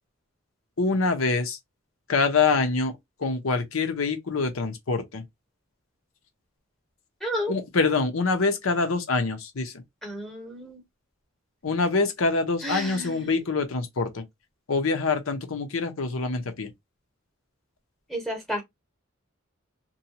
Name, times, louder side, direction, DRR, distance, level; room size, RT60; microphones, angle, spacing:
voice 1, 0.8-1.6 2.1-5.2 7.5-9.8 11.6-14.2 14.7-16.7, left 4 dB, 80° left, 0.8 m, -25 dB
voice 2, 7.2-7.5 10.0-10.8 12.6-13.3 18.1-18.6, equal, ahead, 0.9 m, -31 dB
2.7 x 2.3 x 2.8 m
head